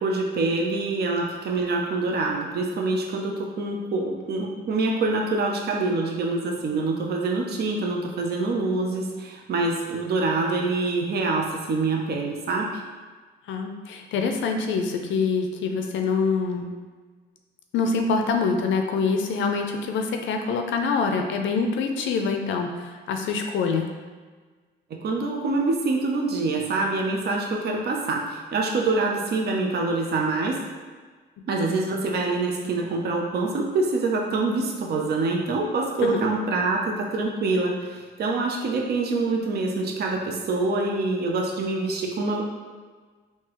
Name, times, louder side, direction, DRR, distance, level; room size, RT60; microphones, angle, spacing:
voice 1, 0.0-12.8 25.0-30.6 31.5-42.4, right 3 dB, 55° right, 0 dB, 0.6 m, -25 dB
voice 2, 13.5-16.7 17.7-23.9 31.6-31.7 36.0-36.2, left 4 dB, 75° left, 4 dB, 0.4 m, -25 dB
3.6 x 2.7 x 3.0 m, 1.4 s
cardioid pair, 90°, 20 cm